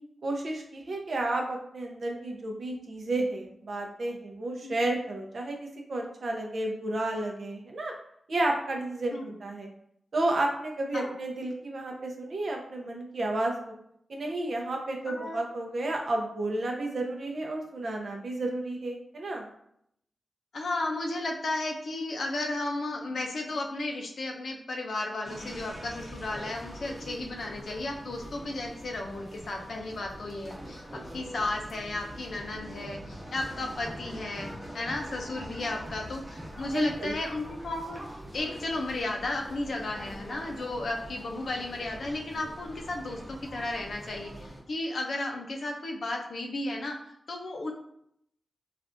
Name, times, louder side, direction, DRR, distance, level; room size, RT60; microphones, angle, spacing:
voice 1, 0.2-7.9 8.3-9.7 10.1-13.7 14.1-19.5 36.7-37.2, right 2 dB, 60° right, 1 dB, 0.6 m, -31 dB
voice 2, 15.1-15.4 20.5-30.9 31.1-38.0 38.3-47.0 47.3-47.7, left 2 dB, 70° left, 2 dB, 0.5 m, -34 dB
sound 1, 25.2-44.6, equal, 20° right, 0.9 m, -43 dB
3.3 x 2.4 x 2.5 m, 0.72 s
cardioid pair, 70°, 0 cm